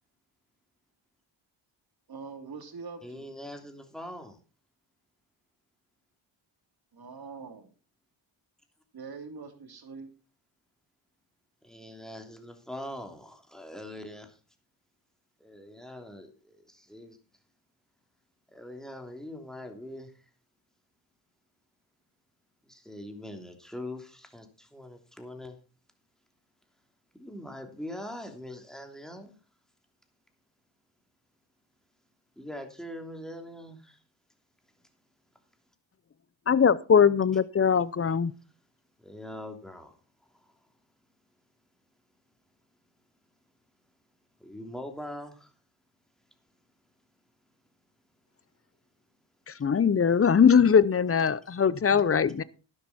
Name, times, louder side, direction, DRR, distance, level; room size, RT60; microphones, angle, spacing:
voice 1, 2.1-3.3 6.9-7.7 8.9-10.1, right 4 dB, 50° right, 3.0 m, -43 dB
voice 2, 3.0-4.4 11.6-14.4 15.4-17.2 18.5-20.2 22.6-25.6 27.2-29.4 32.4-34.0 39.0-40.7 44.4-45.5, left 1 dB, ahead, 3.0 m, -42 dB
voice 3, 36.5-38.3 49.5-52.4, left 7 dB, 30° left, 0.7 m, -21 dB
12.0 x 10.5 x 4.3 m
cardioid pair, 80°, 48 cm